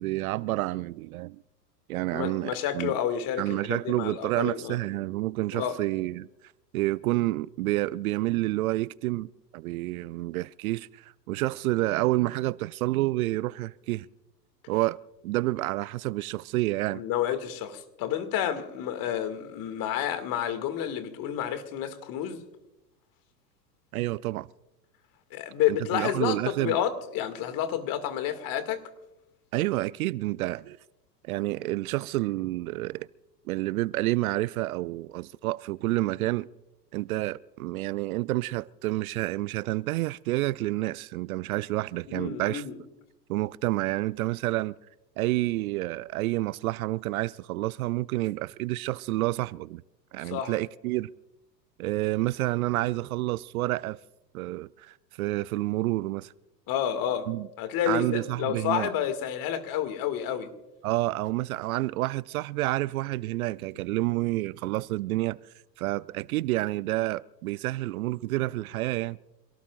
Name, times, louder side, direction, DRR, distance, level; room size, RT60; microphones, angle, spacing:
voice 1, 0.0-1.4 1.9-2.9 3.4-6.3 6.7-14.1 14.7-15.0 15.2-17.0 23.9-24.5 25.7-26.8 29.5-30.8 31.2-33.1 33.5-36.5 36.9-42.6 43.3-44.7 45.2-49.8 50.1-51.1 51.8-54.0 54.3-56.3 57.3-57.5 57.9-58.9 60.8-65.4 65.8-69.2, right 18 dB, 60° right, 0.5 m, -29 dB
voice 2, 2.1-4.8 5.5-5.8 16.9-22.4 25.3-28.8 42.1-42.8 50.2-50.5 56.7-57.3 57.6-60.5, left 10 dB, 40° left, 2.2 m, -30 dB
27.5 x 18.0 x 2.5 m
hypercardioid pair, 100°, 50 cm